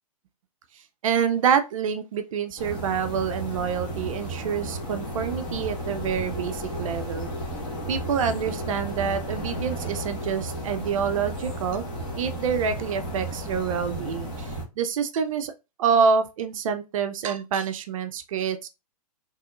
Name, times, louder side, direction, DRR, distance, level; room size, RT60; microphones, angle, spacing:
voice 1, 1.0-7.3 7.9-11.8 12.1-15.5 15.8-18.7, right 6 dB, 55° right, 0.5 m, -27 dB
sound 1, 2.6-14.6, right 1 dB, 20° left, 1.5 m, -33 dB
4.1 x 2.9 x 2.4 m
hypercardioid pair, 135°, 21 cm